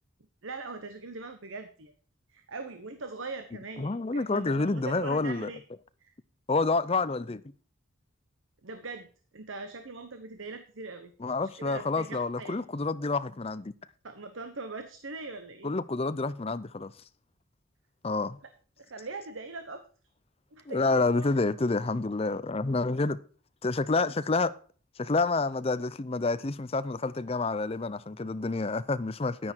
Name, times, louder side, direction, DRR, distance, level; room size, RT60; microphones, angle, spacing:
voice 1, 0.4-1.9 2.3-5.6 6.0-6.1 8.6-9.1 9.3-11.1 11.6-12.5 14.0-15.7 18.8-19.8 20.5-21.3 29.4-29.5, right 3 dB, 65° right, 1.0 m, -41 dB
voice 2, 3.8-5.5 6.5-7.4 11.2-13.7 15.6-16.9 18.0-18.4 20.7-23.2 23.6-24.5 25.0-29.5, left 3 dB, 25° left, 0.5 m, -28 dB
9.9 x 9.8 x 4.5 m
head